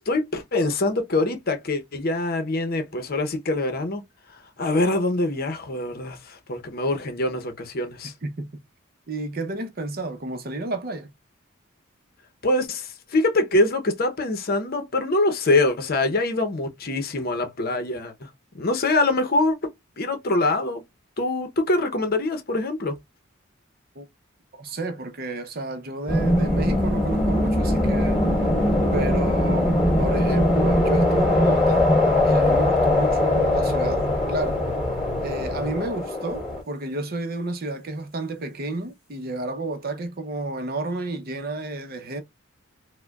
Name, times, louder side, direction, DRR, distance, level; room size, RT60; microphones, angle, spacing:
voice 1, 0.0-4.0 4.6-8.1 12.4-18.3 18.5-19.6 20.0-20.8 21.2-23.0, left 2 dB, 45° left, 0.7 m, -24 dB
voice 2, 9.1-11.1 24.0-24.1 24.5-28.2 28.9-31.9 32.2-34.6 35.2-42.2, right 2 dB, 45° right, 0.7 m, -31 dB
sound 1, 26.1-36.6, left 1 dB, ahead, 2.0 m, -21 dB
4.7 x 2.2 x 2.3 m
head